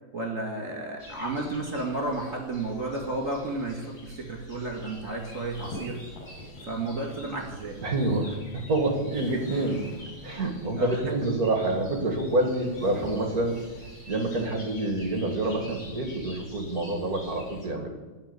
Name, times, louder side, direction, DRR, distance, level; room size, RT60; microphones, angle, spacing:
voice 1, 0.1-6.0 6.6-7.8 9.3-9.4 10.8-11.0 14.4-14.5, right 2 dB, 25° right, 1 dB, 1.9 m, -32 dB
sound 1, 1.0-17.7, equal, 25° left, 3.3 m, -47 dB
sound 2, 4.8-10.5 11.5-15.1, equal, 60° left, 7.5 m, -46 dB
voice 2, 7.8-9.8 10.2-13.6 14.0-17.9, right 2 dB, 50° right, 3 dB, 1.0 m, -27 dB
16.5 x 5.5 x 9.6 m, 1.3 s
omnidirectional pair, 4.2 m